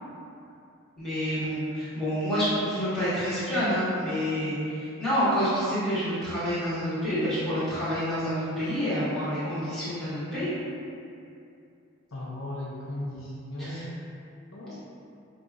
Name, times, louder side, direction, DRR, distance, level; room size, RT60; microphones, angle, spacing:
voice 1, 1.0-10.5 13.6-13.8, equal, ahead, -14 dB, 1.4 m, -28 dB
voice 2, 12.1-13.9 14.5-14.8, left 1 dB, 65° left, -6 dB, 0.7 m, -36 dB
5.3 x 2.9 x 2.5 m, 2.6 s
head